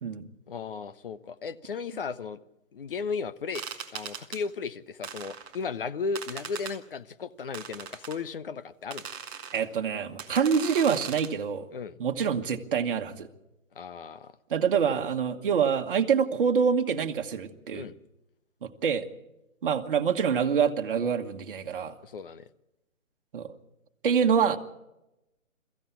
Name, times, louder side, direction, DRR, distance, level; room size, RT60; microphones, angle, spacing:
voice 1, 0.5-2.4 2.7-3.6 3.9-9.1 11.7-11.9 13.7-14.3 17.7-17.9 22.0-22.5, left 5 dB, 40° left, 0.8 m, -35 dB
sound 1, 3.5-4.4 5.0-5.6 6.2-6.8 7.5-8.2 8.9-9.6 10.2-11.3, right 7 dB, 10° right, 0.7 m, -39 dB
voice 2, 9.5-11.7 12.0-13.3 14.5-17.9 18.6-19.1 19.6-21.9 23.3-23.5 24.0-24.6, right 7 dB, 40° right, 1.4 m, -26 dB
23.0 x 15.0 x 8.3 m
figure-of-eight pair, 145°, 40 cm